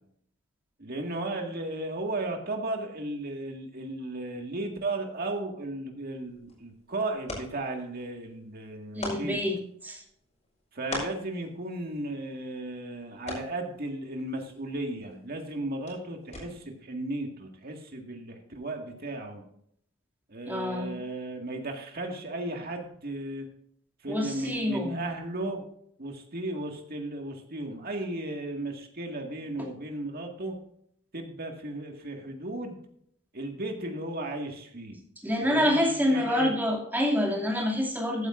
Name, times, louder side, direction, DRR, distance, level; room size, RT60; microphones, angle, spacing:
voice 1, 0.8-9.4 10.7-19.4 20.3-23.5 24.0-25.6 26.0-30.6 31.1-32.8 33.3-35.0 35.4-36.5, right 2 dB, 50° right, 3 dB, 1.9 m, -35 dB
sound 1, 6.1-16.8, left 2 dB, 35° left, 4.9 m, -44 dB
voice 2, 8.9-9.6 9.8-10.0 20.5-21.0 24.1-25.0 35.2-38.3, left 1 dB, 10° right, -1 dB, 2.5 m, -27 dB
14.5 x 9.2 x 2.6 m, 0.67 s
head